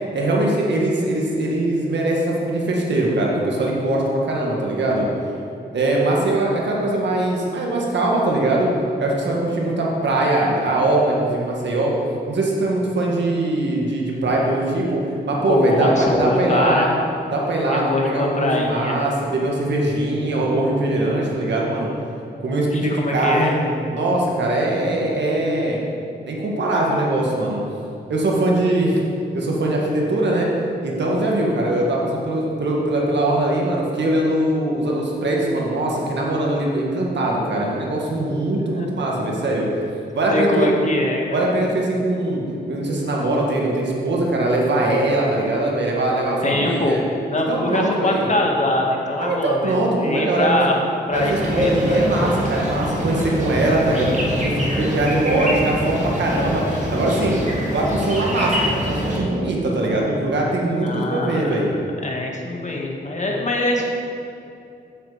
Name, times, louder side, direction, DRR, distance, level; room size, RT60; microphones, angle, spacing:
voice 1, 0.1-5.1 5.7-8.7 9.0-11.9 12.3-16.9 17.3-21.9 22.4-23.6 23.9-25.8 26.2-27.6 28.1-29.0 29.3-30.5 30.8-39.7 40.1-40.7 41.3-42.4 42.7-47.0 47.3-48.3 49.2-50.8 51.1-61.7, right 1 dB, 80° right, -2 dB, 1.7 m, -21 dB
voice 2, 15.5-16.9 17.7-19.0 22.7-23.6 38.7-38.9 40.3-41.4 46.4-50.8 51.1-52.0 60.8-61.4 62.0-63.9, left 2 dB, 40° left, -1 dB, 1.8 m, -23 dB
sound 1, 51.1-59.2, equal, 45° right, 2.5 m, -24 dB
8.8 x 7.6 x 5.0 m, 2.6 s
cardioid pair, 65°, 18 cm